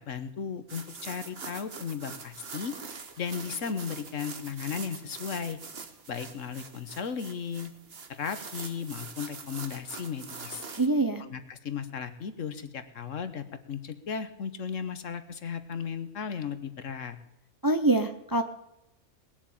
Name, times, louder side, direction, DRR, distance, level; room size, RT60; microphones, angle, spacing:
voice 1, 0.1-2.7 3.2-5.6 6.1-7.7 8.1-10.6 11.2-17.2, left 6 dB, 65° left, 11 dB, 1.4 m, -35 dB
sound 1, 0.7-10.9, right 5 dB, 50° right, 1.4 m, -44 dB
voice 2, 10.8-11.2 17.6-18.4, right 2 dB, 20° right, 8 dB, 0.6 m, -24 dB
20.0 x 7.4 x 8.6 m, 0.89 s
omnidirectional pair, 1.4 m